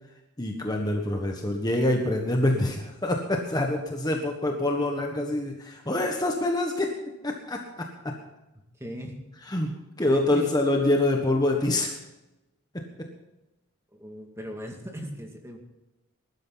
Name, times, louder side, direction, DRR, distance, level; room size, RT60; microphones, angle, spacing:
voice 1, 0.4-6.9 7.2-8.1 9.5-9.7 10.0-11.9 12.7-12.8, left 1 dB, 15° left, 2 dB, 1.4 m, -26 dB
voice 2, 8.8-9.1 10.0-10.6 13.9-15.6, equal, 10° right, 2 dB, 2.2 m, -38 dB
21.0 x 12.5 x 4.0 m, 0.97 s
head